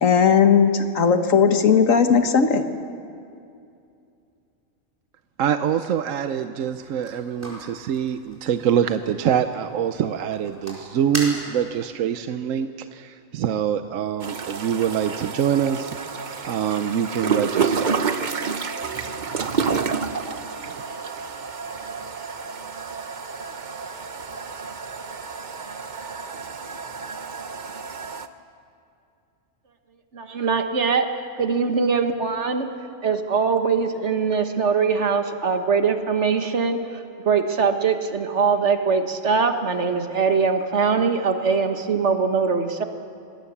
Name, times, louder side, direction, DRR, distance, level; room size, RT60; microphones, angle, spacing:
voice 1, 0.0-2.6, left 6 dB, 75° left, 7 dB, 1.7 m, -17 dB
voice 2, 5.4-18.1 20.7-20.8, right 8 dB, 75° right, 9 dB, 1.1 m, -25 dB
sound 1, 6.7-11.9, right 1 dB, 10° right, 4.6 m, -39 dB
sound 2, 14.2-28.3, right 5 dB, 40° right, 0.9 m, -29 dB
voice 3, 30.1-32.7 33.0-42.8, right 5 dB, 60° right, 7 dB, 1.6 m, -22 dB
26.0 x 19.5 x 7.2 m, 2.5 s
omnidirectional pair, 1.4 m